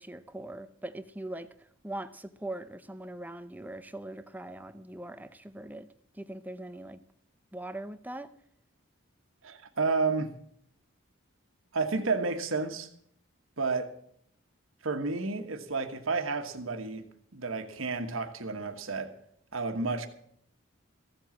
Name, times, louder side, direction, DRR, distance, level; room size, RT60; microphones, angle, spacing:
voice 1, 0.0-1.5 1.8-5.9 6.1-7.0 7.5-8.3, right 1 dB, 10° right, 0.6 m, -41 dB
voice 2, 9.4-10.3 11.7-12.9 13.6-13.9 14.8-17.0 17.3-19.1 19.5-20.1, right 4 dB, 80° right, 1.4 m, -31 dB
15.5 x 7.9 x 7.2 m
head